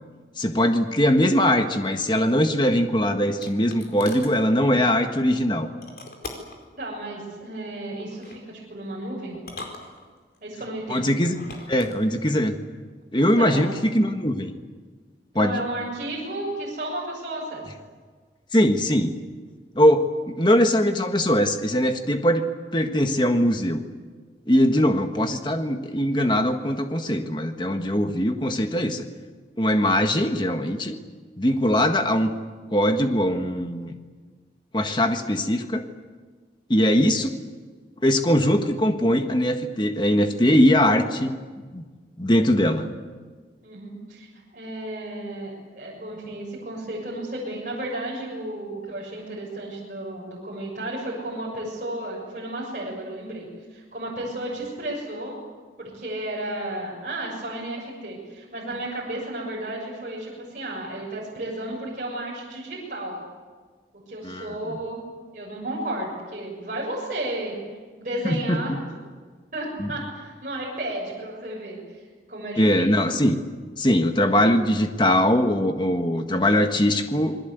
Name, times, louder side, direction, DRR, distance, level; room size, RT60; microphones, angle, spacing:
voice 1, 0.4-5.7 10.9-11.4 11.7-12.6 13.1-14.5 15.3-15.6 18.5-19.1 19.7-22.5 22.7-23.8 24.5-29.1 29.6-31.0 31.4-32.3 32.7-34.0 34.7-35.8 36.7-37.4 38.0-41.3 41.7-41.8 42.2-42.9 64.2-64.8 68.2-68.6 69.8-69.9 72.6-73.4 73.8-77.4, equal, 25° left, 6 dB, 1.6 m, -21 dB
sound 1, 2.9-4.4 5.8-6.6 8.0-8.4 9.3-10.4 11.2-12.0, left 2 dB, 55° left, 4.6 m, -40 dB
voice 2, 6.8-9.4 10.4-11.1 13.4-13.7 15.4-17.6 43.6-44.3 44.5-55.4 55.8-63.2 63.9-65.0 65.3-67.5 68.0-68.8 69.5-73.1, right 1 dB, 45° right, -5 dB, 6.9 m, -33 dB
27.5 x 21.5 x 8.1 m, 1.5 s
head